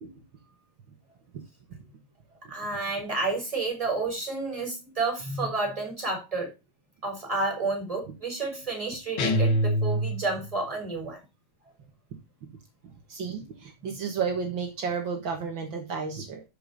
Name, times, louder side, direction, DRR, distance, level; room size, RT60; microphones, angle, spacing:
voice 1, 2.5-6.5 7.0-11.2, right 3 dB, 15° right, 2 dB, 4.0 m, -30 dB
sound 1, 9.2-10.5, equal, 75° left, 2.1 m, -25 dB
voice 2, 13.1-16.4, right 6 dB, 70° right, 3 dB, 2.2 m, -32 dB
12.5 x 5.4 x 4.1 m, 0.26 s
omnidirectional pair, 2.3 m